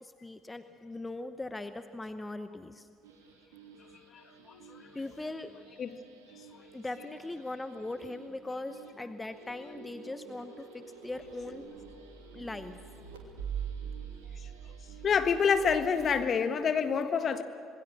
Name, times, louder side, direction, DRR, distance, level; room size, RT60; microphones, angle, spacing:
voice 1, 0.0-2.9 4.9-5.5 6.7-11.7 12.3-12.8, left 2 dB, 15° left, 10 dB, 1.0 m, -40 dB
sound 1, 3.0-16.3, right 6 dB, 75° right, 3.0 m, -46 dB
voice 2, 15.0-17.4, left 6 dB, 40° left, 9 dB, 1.5 m, -26 dB
26.5 x 22.0 x 6.6 m, 2.4 s
figure-of-eight pair, 55°, 0 cm